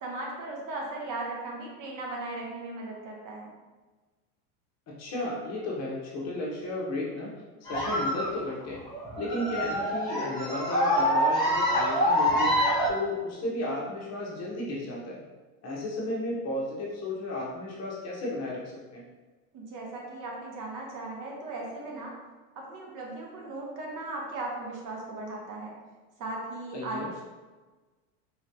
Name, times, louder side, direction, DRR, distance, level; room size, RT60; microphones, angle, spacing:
voice 1, 0.0-3.5 19.5-22.1 22.5-25.7 26.2-27.2, right 2 dB, 40° right, -1 dB, 1.0 m, -37 dB
voice 2, 4.9-7.3 7.6-8.8 9.2-12.5 12.9-15.2 15.6-18.6 18.9-19.0 26.7-27.1, left 1 dB, 35° left, -4 dB, 1.1 m, -33 dB
sound 1, 7.7-12.9, equal, 10° left, 1.1 m, -26 dB
3.8 x 3.1 x 2.9 m, 1.3 s
supercardioid pair, 110°, 46 cm